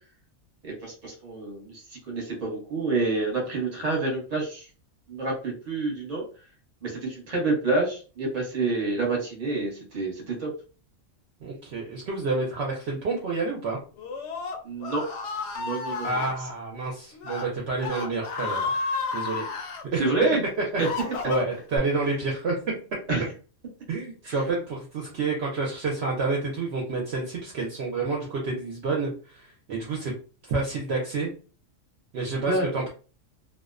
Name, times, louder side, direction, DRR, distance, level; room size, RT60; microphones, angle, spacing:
voice 1, 0.6-1.8 2.1-4.7 5.1-6.2 6.8-10.5 14.6-15.0 15.6-16.2 20.0-20.4 20.8-20.9 23.1-23.2 24.2-24.3 32.5-32.9, right 3 dB, 35° right, -1 dB, 0.9 m, -28 dB
voice 2, 11.4-13.8 16.0-18.7 19.1-19.5 19.9-20.1 20.9-22.6 23.9-30.1 30.4-31.3 32.1-32.9, right 3 dB, 65° right, -2 dB, 0.8 m, -29 dB
Screaming, 14.0-16.3 17.1-17.5 17.8-19.8 20.4-21.8, left 4 dB, 70° left, 0.8 m, -32 dB
2.5 x 2.1 x 2.4 m, 0.37 s
omnidirectional pair, 1.3 m